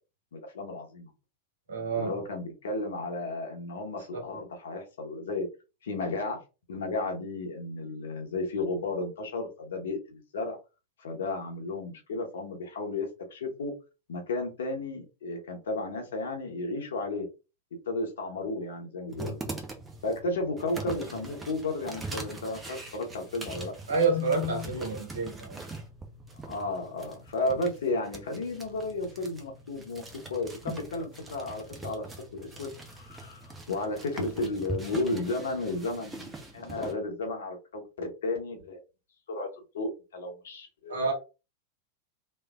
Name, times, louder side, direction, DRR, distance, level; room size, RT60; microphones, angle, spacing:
voice 1, 0.3-1.1 1.9-5.5 5.8-6.4 6.7-10.6 11.0-13.7 14.1-17.2 17.9-19.4 20.0-23.7 26.4-32.0 32.3-38.8 39.3-39.5 39.7-41.1, left 2 dB, 65° left, 0.9 m, -33 dB
voice 2, 1.7-2.2 4.1-4.2 23.9-25.6 40.9-41.1, right 3 dB, 65° right, 1.3 m, -28 dB
sound 1, 19.1-36.9, right 2 dB, 15° right, 0.8 m, -42 dB
3.3 x 2.8 x 2.3 m
figure-of-eight pair, 90°, 0 cm